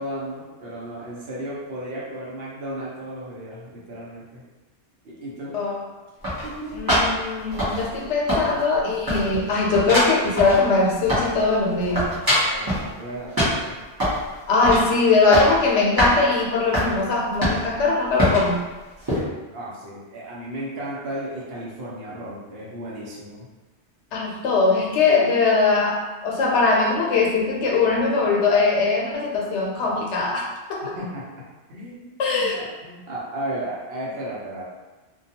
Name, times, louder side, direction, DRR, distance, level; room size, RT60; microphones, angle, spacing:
voice 1, 0.0-4.4 5.0-5.6 6.4-6.8 7.4-7.6 12.4-13.8 19.0-23.5 24.3-24.4 31.0-31.3 31.7-34.6, right 1 dB, 65° right, -6 dB, 0.9 m, -34 dB
sound 1, 6.2-8.0 8.3-8.8 9.1-11.4 11.7-12.9 13.4-14.2 14.6-14.9 15.2-15.6 16.0-16.1 16.7-16.9 17.4-17.8 18.2-18.5 19.1-19.2, equal, 20° right, 0.7 m, -23 dB
voice 2, 6.7-12.2 14.5-18.7 24.1-30.9 32.2-32.6, left 3 dB, 85° left, -1 dB, 0.9 m, -21 dB
2.3 x 2.2 x 2.7 m, 1.2 s
omnidirectional pair, 1.1 m